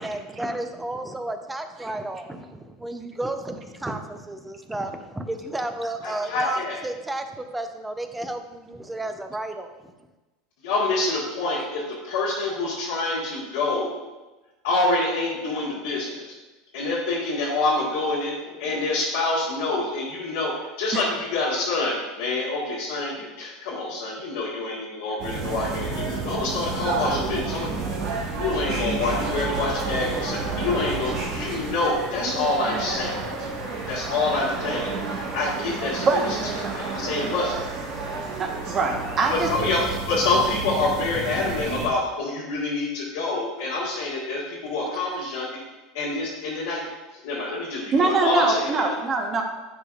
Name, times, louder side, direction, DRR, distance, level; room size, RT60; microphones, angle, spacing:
voice 1, 0.0-9.9, right 1 dB, 10° right, 7 dB, 0.6 m, -32 dB
voice 2, 6.0-6.8 10.6-13.9 14.6-16.3 16.7-27.7 28.3-33.2 33.9-35.0 35.3-36.4 36.7-37.6 39.3-45.5 45.9-46.8 47.2-48.9, left 2 dB, 80° left, -7 dB, 1.4 m, -26 dB
sound 1, 25.2-41.9, right 3 dB, 60° right, 1.5 m, -30 dB
voice 3, 36.0-36.4 36.6-36.8 38.4-39.5 47.9-49.4, right 3 dB, 35° right, 2 dB, 1.1 m, -23 dB
10.5 x 4.0 x 2.5 m, 1.1 s
hypercardioid pair, 95°, 0 cm